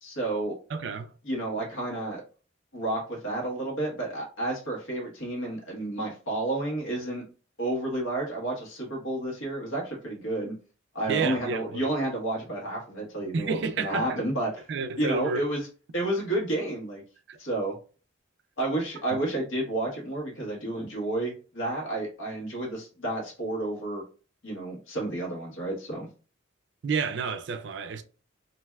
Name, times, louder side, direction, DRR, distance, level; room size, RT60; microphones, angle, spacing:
voice 1, 0.0-0.6 1.2-2.2 2.7-7.2 7.6-10.5 10.9-14.5 15.0-15.6 15.9-17.0 17.4-17.8 18.6-24.0 24.4-26.1, right 1 dB, 85° left, 1.2 m, -31 dB
voice 2, 0.7-1.1 11.1-11.9 13.3-14.2 14.7-15.4 17.3-17.4 19.1-19.2 26.8-28.0, right 5 dB, 60° right, 0.4 m, -30 dB
3.2 x 2.5 x 2.3 m
head